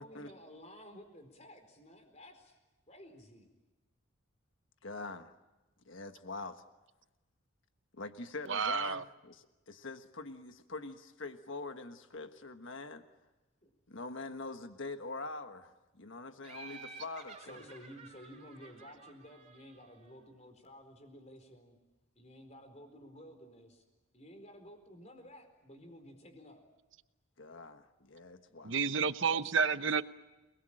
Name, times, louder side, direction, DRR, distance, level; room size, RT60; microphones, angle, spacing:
voice 1, 0.0-2.6 2.9-3.5 13.6-13.7 17.4-21.8 22.2-23.8 24.1-26.6 28.5-28.6 29.4-29.5, equal, 30° left, 6 dB, 4.4 m, -53 dB
voice 2, 4.8-5.3 5.8-6.6 7.9-13.0 13.9-17.7 27.4-28.8, left 3 dB, 65° left, 8 dB, 1.4 m, -44 dB
voice 3, 8.5-9.0 28.6-30.0, right 5 dB, 65° right, 12 dB, 1.0 m, -30 dB
Laughter, 16.4-20.1, right 4 dB, 30° right, 6.3 m, -52 dB
29.5 x 21.0 x 8.9 m, 1.1 s
head